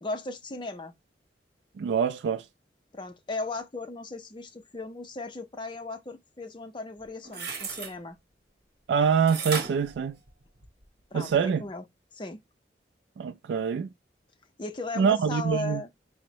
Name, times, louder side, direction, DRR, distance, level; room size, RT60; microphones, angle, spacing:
voice 1, 0.0-0.9 2.9-8.2 11.1-11.8 12.2-12.4 14.6-15.9, left 3 dB, 25° left, 0.5 m, -36 dB
voice 2, 1.8-2.4 8.9-10.2 11.1-11.6 13.2-13.9 15.0-15.8, right 6 dB, 80° right, 0.3 m, -25 dB
Door Handle, 7.0-7.9 9.3-10.8 11.3-11.4, right 5 dB, 60° right, 1.0 m, -35 dB
3.8 x 2.1 x 4.4 m
head